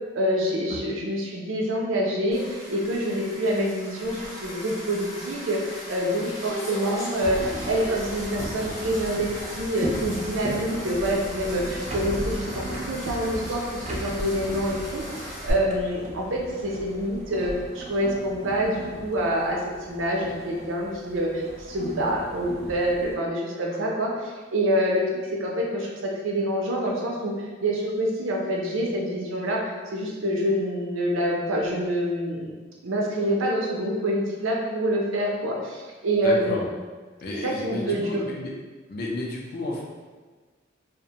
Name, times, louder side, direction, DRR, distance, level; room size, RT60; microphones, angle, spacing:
voice 1, 0.1-13.6 13.9-19.6 19.9-25.0 25.3-27.3 27.6-32.5 32.8-36.6 37.3-38.2, equal, 85° right, -2 dB, 0.5 m, -26 dB
sound 1, 2.3-15.5, equal, 15° left, 0.7 m, -38 dB
sound 2, 7.2-23.2, right 1 dB, 35° right, 0.3 m, -37 dB
voice 2, 36.2-36.6 37.2-38.5 38.9-39.8, left 2 dB, 50° left, -2 dB, 0.4 m, -31 dB
2.5 x 2.1 x 2.8 m, 1.4 s
head